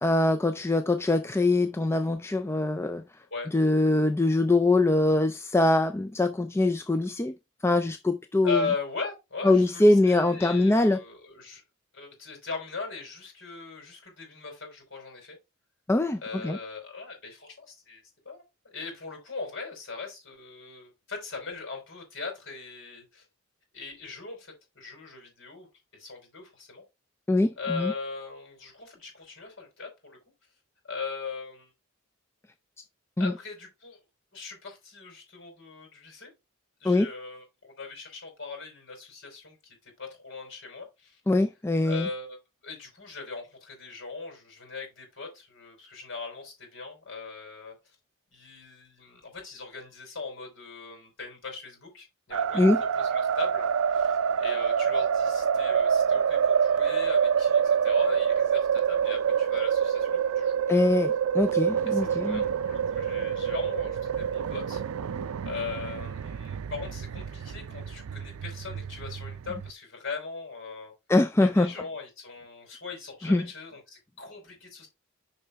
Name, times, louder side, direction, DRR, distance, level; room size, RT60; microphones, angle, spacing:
voice 1, 0.0-3.0 3.5-7.3 7.6-8.7 9.4-11.0 15.9-16.6 27.3-27.9 33.2-33.3 36.8-37.1 41.3-42.1 52.5-52.8 60.7-62.4 71.1-71.7 73.2-73.5, left 2 dB, 10° left, 0.3 m, -23 dB
voice 2, 8.4-11.6 11.9-15.4 16.2-18.4 18.7-23.2 23.7-25.7 25.9-26.8 27.6-30.2 30.8-31.7 33.2-34.0 34.3-36.3 36.8-41.2 41.8-47.7 48.3-52.6 52.9-60.6 61.9-64.8 65.4-70.9 71.4-74.9, left 4 dB, 60° left, 4.9 m, -39 dB
sound 1, 52.3-69.7, right 7 dB, 80° right, 0.4 m, -27 dB
7.0 x 5.6 x 3.4 m
head